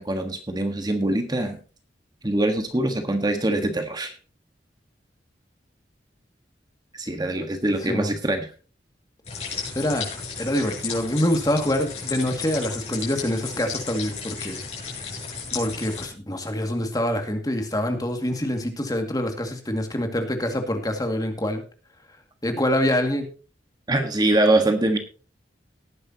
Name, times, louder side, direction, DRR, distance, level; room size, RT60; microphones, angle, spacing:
voice 1, 0.0-1.6 2.2-4.1 6.9-8.5 23.9-25.0, right 1 dB, 25° right, 6 dB, 1.4 m, -23 dB
voice 2, 7.8-8.1 9.7-10.1 10.4-14.6 15.5-21.6 22.4-23.3, left 1 dB, 20° left, 5 dB, 2.2 m, -25 dB
sound 1, 9.2-16.1, left 5 dB, 35° left, 6.9 m, -34 dB
18.5 x 10.0 x 2.9 m, 0.36 s
head